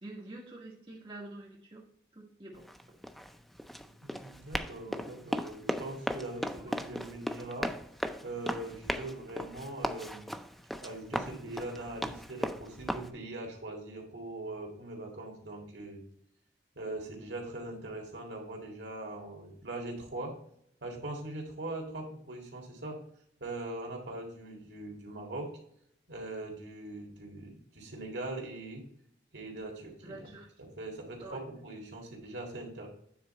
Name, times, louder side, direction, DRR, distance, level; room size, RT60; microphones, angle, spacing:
voice 1, 0.0-1.8 2.1-2.6 6.5-7.1 30.0-30.5 31.2-31.4, right 2 dB, 30° right, -4 dB, 1.8 m, -47 dB
Run, 2.6-13.1, equal, ahead, 0.4 m, -37 dB
voice 2, 4.0-7.7 8.2-10.3 10.8-16.0 16.8-20.3 20.8-23.0 23.4-25.5 26.1-28.8 29.3-32.9, right 2 dB, 80° right, 0 dB, 2.0 m, -41 dB
9.4 x 3.9 x 4.3 m, 0.67 s
head